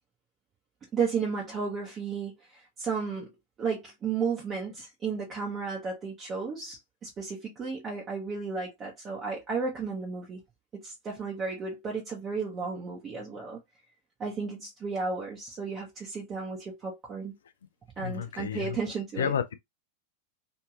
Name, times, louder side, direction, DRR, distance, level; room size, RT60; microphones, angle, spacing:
voice 1, 0.9-3.3 3.6-10.4 10.7-13.6 14.2-17.3 18.0-19.3, right 5 dB, 25° right, 1.0 m, -33 dB
voice 2, 18.0-18.8 19.2-19.5, left 8 dB, 65° left, 0.4 m, -31 dB
3.1 x 2.7 x 2.4 m
figure-of-eight pair, 90°, 0 cm